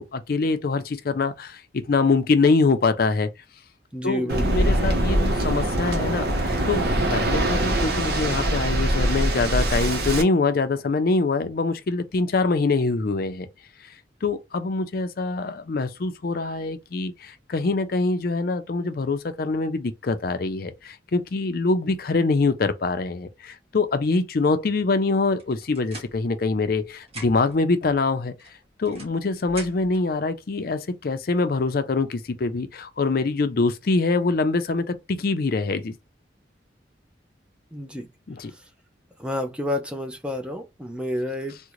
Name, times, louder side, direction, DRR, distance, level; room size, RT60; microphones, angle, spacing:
voice 1, 0.0-3.3 4.0-6.3 6.7-13.5 14.2-28.3 28.8-35.9 38.3-38.5, left 3 dB, 50° left, 0.4 m, -24 dB
voice 2, 3.9-4.7 37.7-38.1 38.5-38.6 39.2-41.6, left 1 dB, 5° right, 0.4 m, -30 dB
Waves surf, 4.3-10.2, right 1 dB, 55° right, 0.8 m, -23 dB
sound 1, 25.4-26.8 27.0-27.6 28.4-30.0, right 1 dB, 35° right, 1.3 m, -43 dB
3.7 x 2.1 x 3.0 m
head